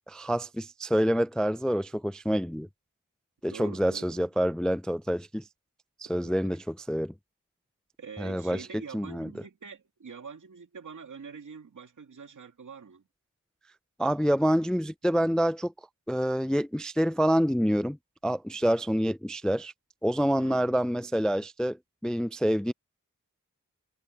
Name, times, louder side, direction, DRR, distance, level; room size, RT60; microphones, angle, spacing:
voice 1, 0.1-2.7 3.4-5.4 6.0-7.1 8.2-8.6 8.9-9.3 14.0-15.7 16.1-18.0 18.2-19.7 20.0-21.8 22.0-22.7, equal, ahead, 0.3 m, -27 dB
voice 2, 3.5-4.3 6.1-6.6 8.0-13.0 20.4-20.8, right 5 dB, 70° right, 2.7 m, -45 dB
wide cardioid pair, 70°, 32 cm